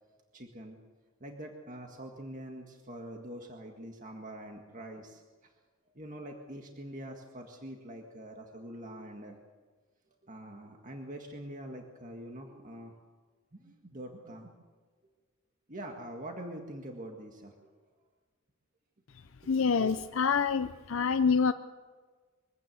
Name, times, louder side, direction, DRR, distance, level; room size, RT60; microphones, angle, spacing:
voice 1, 0.3-0.8 1.2-5.2 6.0-9.4 10.2-13.0 13.5-14.5 15.7-17.7 19.4-20.0, right 1 dB, 35° right, 2 dB, 1.9 m, -44 dB
voice 2, 19.5-21.5, left 5 dB, 65° left, 9 dB, 0.6 m, -26 dB
23.5 x 16.5 x 7.9 m, 1.4 s
head